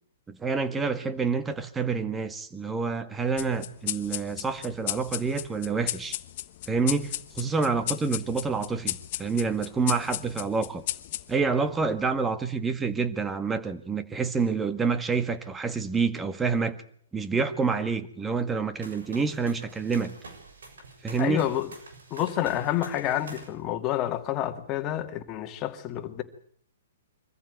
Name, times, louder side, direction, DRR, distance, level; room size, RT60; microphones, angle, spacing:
voice 1, 0.3-6.2 6.7-10.8 11.3-16.8 17.1-20.1 21.0-21.5, right 4 dB, 10° right, 1.7 m, -28 dB
sound 1, 3.4-12.3, left 15 dB, 45° left, 1.2 m, -35 dB
sound 2, 18.8-23.5, right 3 dB, 80° right, 6.7 m, -46 dB
voice 2, 21.2-21.7 22.1-26.2, left 12 dB, 30° left, 2.3 m, -29 dB
24.0 x 15.0 x 9.4 m
hypercardioid pair, 135°, 0 cm